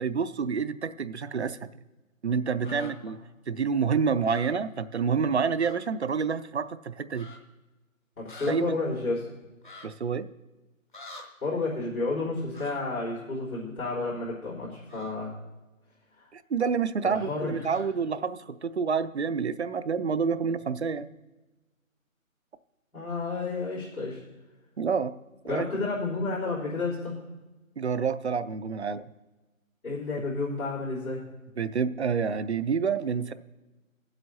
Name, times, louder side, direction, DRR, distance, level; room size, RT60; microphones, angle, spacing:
voice 1, 0.0-1.6 2.2-3.2 3.5-7.3 8.5-8.8 9.8-10.3 16.3-21.1 24.8-25.2 25.5-25.7 27.8-29.1 31.6-33.3, right 6 dB, 55° right, 13 dB, 0.5 m, -28 dB
sound 1, 2.6-2.9 4.2-4.5 5.6-5.8 6.1-6.2 7.1-7.4 8.3-8.5 9.6-9.9 10.9-11.2 12.5-12.8 14.9-15.1 17.6-17.9, left 2 dB, 35° left, 0.9 m, -45 dB
voice 2, 8.2-9.3 11.4-15.3 16.2-16.3 17.0-17.7 22.9-24.2 25.5-27.1 29.8-31.2, left 3 dB, 90° left, -9 dB, 3.9 m, -31 dB
22.5 x 7.9 x 2.8 m, 1.1 s
figure-of-eight pair, 170°, 42 cm